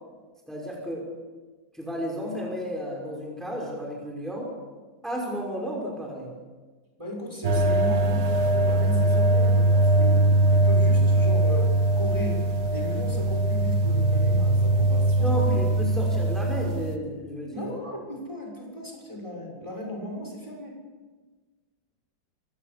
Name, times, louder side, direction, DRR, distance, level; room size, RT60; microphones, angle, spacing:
voice 1, 0.5-1.1 1.7-4.5 5.0-6.3 15.2-17.6, equal, ahead, -2 dB, 5.8 m, -32 dB
voice 2, 7.0-10.2 10.5-12.4 12.7-15.6 17.5-20.8, left 1 dB, 15° right, 0 dB, 6.5 m, -36 dB
sound 1, 7.4-17.0, right 2 dB, 55° right, 2.0 m, -21 dB
27.0 x 24.5 x 7.0 m, 1.3 s
omnidirectional pair, 2.1 m